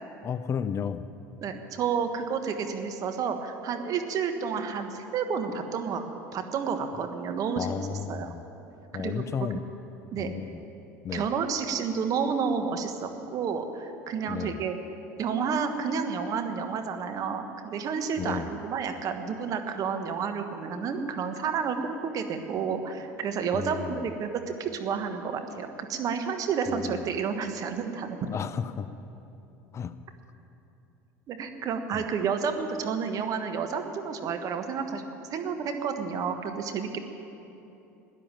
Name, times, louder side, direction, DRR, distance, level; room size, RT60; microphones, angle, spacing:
voice 1, 0.2-1.1 7.6-8.4 8.9-9.6 10.2-10.6 11.0-11.3 14.3-14.6 18.2-18.5 23.5-24.1 26.7-27.0 28.3-28.9 29.7-29.9 31.9-32.0, left 7 dB, 40° left, 13 dB, 0.6 m, -33 dB
voice 2, 1.4-8.3 9.0-9.2 10.1-10.3 11.1-14.8 15.2-28.2 31.3-35.0 35.3-37.0, right 6 dB, 50° right, 6 dB, 1.5 m, -30 dB
13.0 x 10.0 x 9.1 m, 2.9 s
hypercardioid pair, 75°, 8 cm